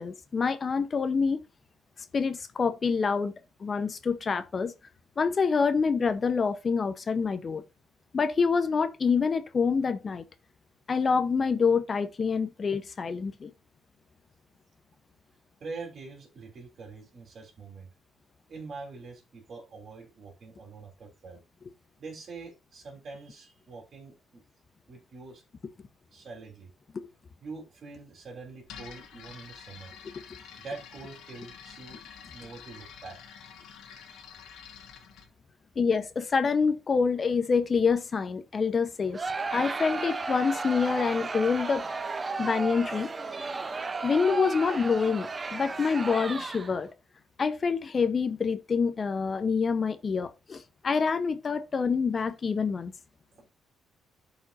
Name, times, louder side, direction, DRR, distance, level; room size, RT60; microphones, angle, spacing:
voice 1, 0.0-1.4 2.1-3.3 3.6-4.7 5.2-7.6 8.1-10.2 10.9-13.5 35.8-39.2 39.5-41.9 42.4-43.1 44.0-46.9 47.4-52.9, left 5 dB, 40° left, 0.7 m, -26 dB
voice 2, 15.6-17.9 18.5-21.4 22.0-24.4 24.9-25.4 26.1-26.7 27.4-29.9 30.6-32.0 32.3-33.2 53.3-53.4, right 4 dB, 50° right, 3.3 m, -44 dB
sound 1, 28.7-35.3, left 7 dB, 85° left, 1.6 m, -48 dB
Crowd, 39.1-46.9, right 4 dB, 30° right, 0.6 m, -34 dB
12.0 x 5.0 x 2.5 m
cardioid pair, 90°, 0 cm